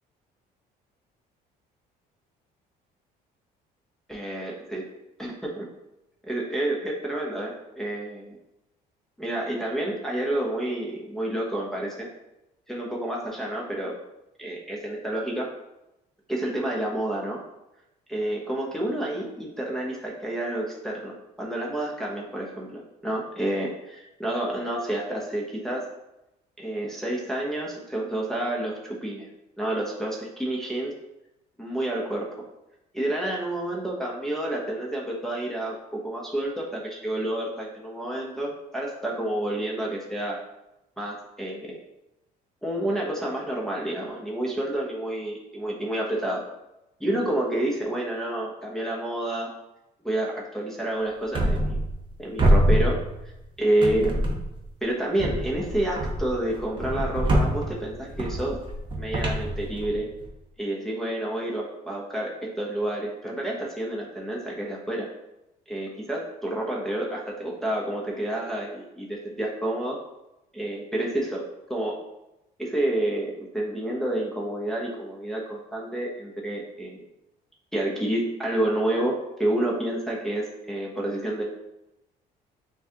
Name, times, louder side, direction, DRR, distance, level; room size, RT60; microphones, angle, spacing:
voice 1, 4.1-4.9 5.2-5.7 6.3-8.4 9.2-12.1 12.7-13.9 14.4-15.5 16.3-17.4 18.1-25.9 26.6-29.3 29.6-30.9 31.6-32.3 32.9-40.4 41.0-41.8 42.6-46.4 47.0-49.5 50.0-51.8 52.2-53.3 53.6-54.2 54.8-58.6 58.9-60.1 60.6-65.1 65.7-70.0 70.5-71.4 71.7-72.0 72.6-77.1 77.7-81.4, right 1 dB, ahead, -4 dB, 0.8 m, -29 dB
sound 1, 51.3-52.1 52.4-53.5 53.8-54.6 55.2-60.3, right 1 dB, 30° right, 0.8 m, -25 dB
6.0 x 2.3 x 2.8 m, 0.92 s
cardioid pair, 110°, 17 cm